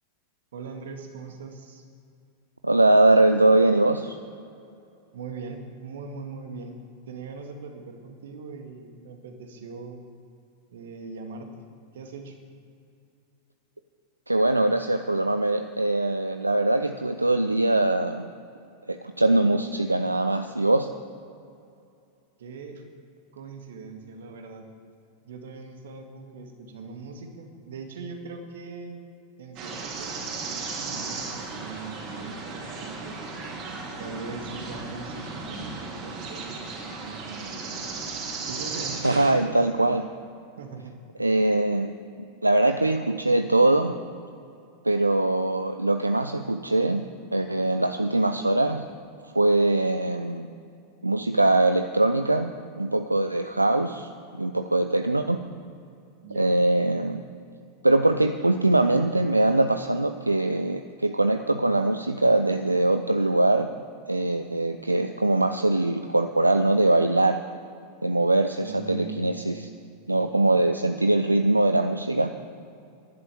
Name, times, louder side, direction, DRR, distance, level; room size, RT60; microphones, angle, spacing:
voice 1, 0.5-1.8 5.1-6.8 7.1-10.0 10.7-11.7 11.9-12.4 22.4-22.8 23.3-24.7 25.2-29.0 29.4-33.3 34.0-39.6 40.6-41.0 56.2-56.5 68.6-69.6, right 4 dB, 60° right, 4 dB, 2.1 m, -40 dB
voice 2, 2.6-4.2 14.3-18.3 18.9-20.9 39.0-40.1 41.2-41.9 42.4-43.9 44.8-47.0 47.3-48.8 49.3-50.5 51.0-52.5 52.8-55.4 56.4-57.2 57.8-63.7 64.1-67.4 68.0-69.7 70.1-72.3, right 2 dB, 85° right, 9 dB, 0.6 m, -22 dB
sound 1, 29.6-39.3, right 4 dB, 40° right, 4.1 m, -35 dB
12.0 x 11.5 x 8.6 m, 2.5 s
figure-of-eight pair, 90°, 0 cm